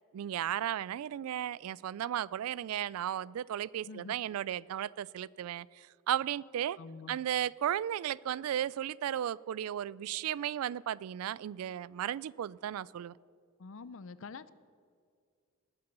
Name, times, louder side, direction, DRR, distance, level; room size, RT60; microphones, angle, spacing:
voice 1, 0.1-6.8 7.1-13.2, right 10 dB, 85° right, 23 dB, 0.3 m, -35 dB
voice 2, 6.8-7.2 13.6-14.5, left 4 dB, 65° left, 16 dB, 0.5 m, -46 dB
19.5 x 6.8 x 6.7 m, 2.2 s
head